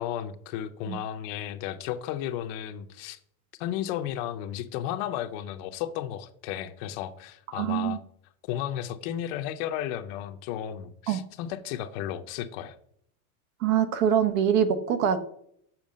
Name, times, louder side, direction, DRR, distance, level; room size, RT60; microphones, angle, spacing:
voice 1, 0.0-3.2 3.6-8.0 8.5-12.8, left 11 dB, 45° left, 10 dB, 0.6 m, -34 dB
voice 2, 7.5-8.0 11.1-11.2 13.6-15.2, right 8 dB, 65° right, 11 dB, 1.1 m, -24 dB
7.3 x 5.8 x 5.1 m, 0.69 s
supercardioid pair, 160°, 43 cm